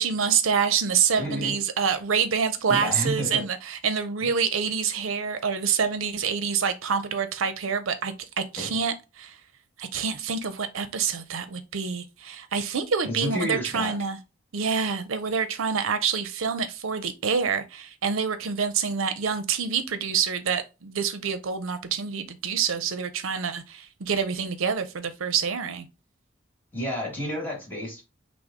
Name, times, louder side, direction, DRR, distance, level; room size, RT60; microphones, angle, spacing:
voice 1, 0.0-9.4 9.8-14.2 14.5-25.9, right 6 dB, 75° right, 0.6 m, -27 dB
voice 2, 1.2-1.6 2.7-3.4 4.2-4.3 8.6-8.8 13.0-13.9 26.7-28.0, equal, 10° left, 1.6 m, -30 dB
6.0 x 2.0 x 3.7 m
head